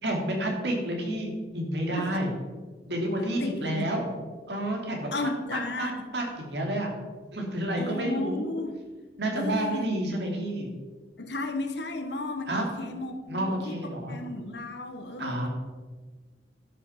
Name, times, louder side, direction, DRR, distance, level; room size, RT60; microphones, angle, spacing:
voice 1, 0.0-2.3 2.9-4.1 4.5-5.1 5.5-6.9 7.3-8.5 9.2-10.7 12.5-12.7 13.3-14.2 15.2-15.5, right 1 dB, 75° right, 0 dB, 2.6 m, -30 dB
voice 2, 3.0-3.9 5.1-6.1 7.8-8.7 9.3-9.9 10.2-10.4 11.2-15.5, left 2 dB, 75° left, 6 dB, 1.3 m, -34 dB
11.5 x 6.5 x 5.7 m, 1.3 s
head